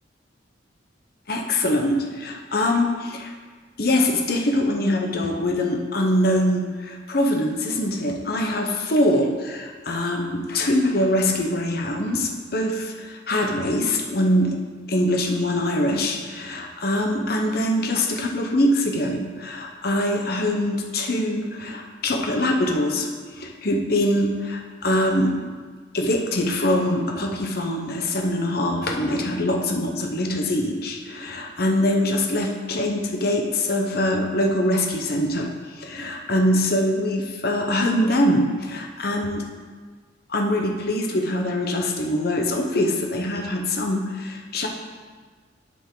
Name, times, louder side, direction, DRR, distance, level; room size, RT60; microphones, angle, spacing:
voice 1, 1.3-3.3 3.8-14.6 14.9-23.1 23.3-25.3 25.9-39.4 40.3-44.7, left 1 dB, 55° left, 2 dB, 0.9 m, -23 dB
10.0 x 5.2 x 3.8 m, 1.5 s
head